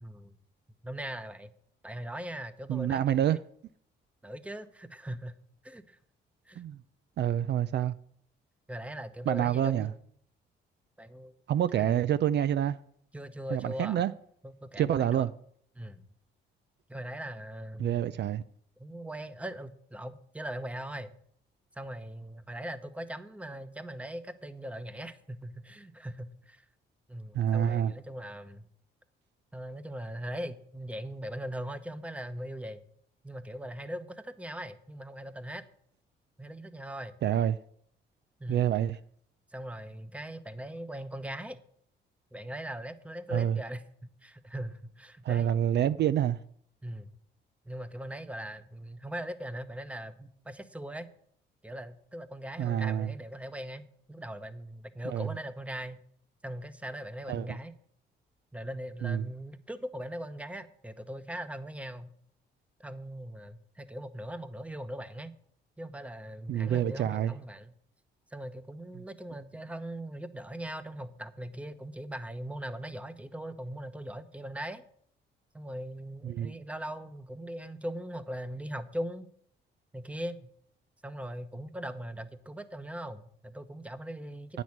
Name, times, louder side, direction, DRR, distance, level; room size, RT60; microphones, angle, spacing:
voice 1, 0.0-0.3 0.8-1.5 1.8-3.3 4.2-5.3 5.6-6.0 6.5-6.7 8.7-10.0 11.0-11.3 11.7-11.9 13.1-14.0 14.4-15.3 15.7-16.1 16.9-18.2 18.8-21.1 21.7-26.6 27.1-28.7 29.5-32.8 33.2-35.6 36.4-37.1 38.4-38.7 39.5-41.6 42.3-43.8 44.2-45.5 46.8-47.1 47.6-51.1 51.6-56.0 56.4-57.7 58.5-62.1 62.8-65.3 65.8-67.7 68.3-74.8 75.5-79.3 79.9-80.5 81.0-84.6, right 1 dB, 5° right, 0.9 m, -40 dB
voice 2, 2.7-3.4 6.6-6.8 7.2-7.9 9.3-9.9 11.5-12.8 13.5-14.1 14.8-15.3 17.8-18.4 27.3-27.9 37.2-37.6 38.5-39.0 43.3-43.6 45.2-46.4 52.6-53.1 55.0-55.3 57.3-57.6 59.0-59.3 66.5-67.3 76.2-76.5 84.5-84.6, right 10 dB, 60° right, 0.4 m, -27 dB
9.2 x 6.2 x 8.6 m
cardioid pair, 90°, 20 cm